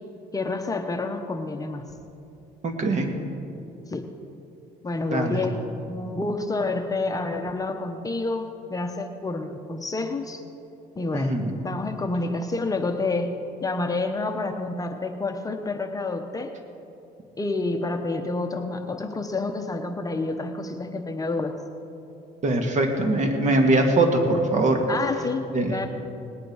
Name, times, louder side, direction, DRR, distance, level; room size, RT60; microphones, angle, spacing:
voice 1, 0.3-1.8 3.9-4.0 4.8-10.4 11.0-11.4 11.6-16.5 17.4-21.6 24.9-25.4 25.7-25.9, left 3 dB, 20° left, 5 dB, 0.9 m, -28 dB
voice 2, 2.6-3.1 5.1-5.4 11.1-11.5 22.4-24.8 25.5-25.8, right 2 dB, 45° right, 4 dB, 1.9 m, -22 dB
19.0 x 9.7 x 4.8 m, 2.7 s
cardioid pair, 110°, 17 cm